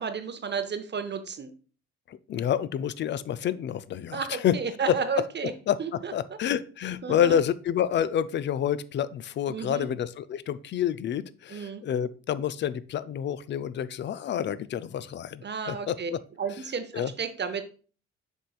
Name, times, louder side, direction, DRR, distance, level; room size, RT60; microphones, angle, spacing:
voice 1, 0.0-1.5 4.1-5.5 5.8-6.1 7.0-7.4 9.5-9.9 11.5-11.8 15.4-16.1 16.4-17.6, right 5 dB, 30° right, 10 dB, 0.7 m, -32 dB
voice 2, 2.1-4.6 4.9-5.0 5.7-16.2 16.9-17.1, left 9 dB, 30° left, 15 dB, 0.4 m, -28 dB
7.3 x 5.4 x 2.4 m, 0.39 s
figure-of-eight pair, 45°, 36 cm